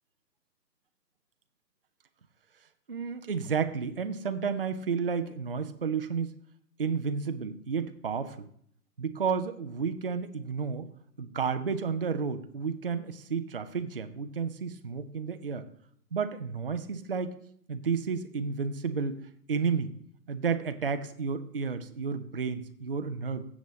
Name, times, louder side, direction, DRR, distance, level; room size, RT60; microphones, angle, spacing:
voice 1, 2.9-6.3 6.8-8.5 9.0-10.9 11.2-15.7 16.1-17.4 17.7-19.2 19.5-19.9 20.3-23.5, right 5 dB, 35° right, 9 dB, 0.5 m, -31 dB
15.5 x 7.2 x 3.1 m, 0.64 s
figure-of-eight pair, 140°, 49 cm